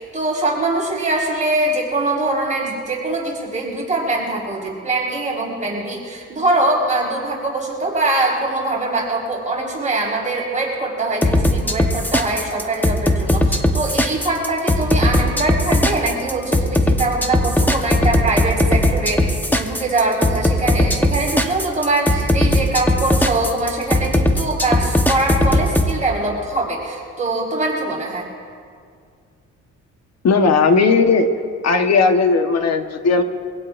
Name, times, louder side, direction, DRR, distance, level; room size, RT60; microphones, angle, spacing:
voice 1, 0.0-28.2, right 2 dB, 25° right, -5 dB, 4.8 m, -22 dB
sound 1, 11.2-25.9, left 1 dB, 5° left, 1.1 m, -18 dB
voice 2, 30.2-31.3 31.6-33.2, left 4 dB, 60° left, 6 dB, 1.3 m, -16 dB
24.5 x 16.5 x 2.6 m, 2.2 s
cardioid pair, 90°, 30 cm